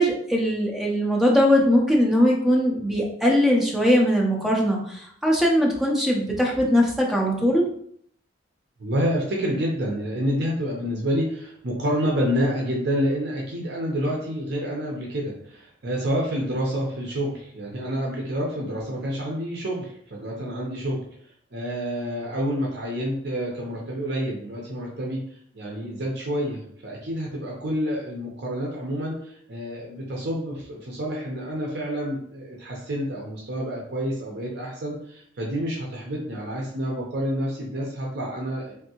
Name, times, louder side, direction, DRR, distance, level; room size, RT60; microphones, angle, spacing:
voice 1, 0.0-7.6, equal, ahead, -2 dB, 0.5 m, -20 dB
voice 2, 8.8-21.0 21.5-25.2 25.5-38.7, equal, 55° right, -2 dB, 0.7 m, -28 dB
3.5 x 2.6 x 2.9 m, 0.65 s
head